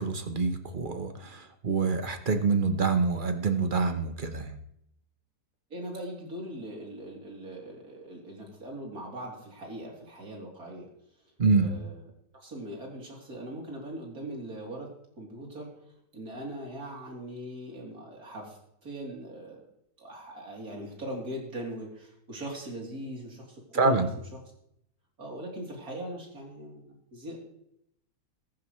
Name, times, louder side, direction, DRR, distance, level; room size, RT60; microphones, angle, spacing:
voice 1, 0.0-4.5 11.4-11.7 23.8-24.1, right 4 dB, 35° right, 7 dB, 1.2 m, -26 dB
voice 2, 5.7-10.9 11.6-12.0 12.4-14.9 15.2-15.7 16.1-19.7 20.0-24.1 25.2-27.4, right 1 dB, 60° right, -2 dB, 4.0 m, -40 dB
15.0 x 14.5 x 3.2 m, 0.74 s
omnidirectional pair, 1.8 m